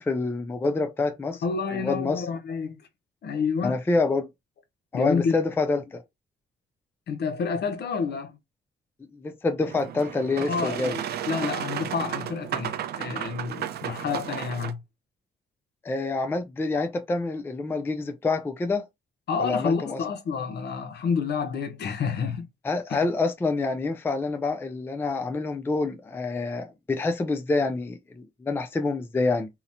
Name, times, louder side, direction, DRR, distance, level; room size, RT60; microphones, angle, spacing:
voice 1, 0.0-1.4 1.7-2.3 3.6-4.3 4.9-6.0 9.1-11.0 15.8-18.8 19.4-20.0 22.6-29.5, left 3 dB, 10° left, 0.3 m, -27 dB
voice 2, 1.4-2.8 3.2-3.8 4.9-5.4 7.1-8.4 10.5-10.9 11.3-14.8 19.3-22.5 22.9-23.1, left 5 dB, 55° left, 0.6 m, -29 dB
Boat Water vehicle, 9.7-14.7, right 10 dB, 55° right, 0.4 m, -33 dB
2.8 x 2.0 x 2.5 m
cardioid pair, 90°, 20 cm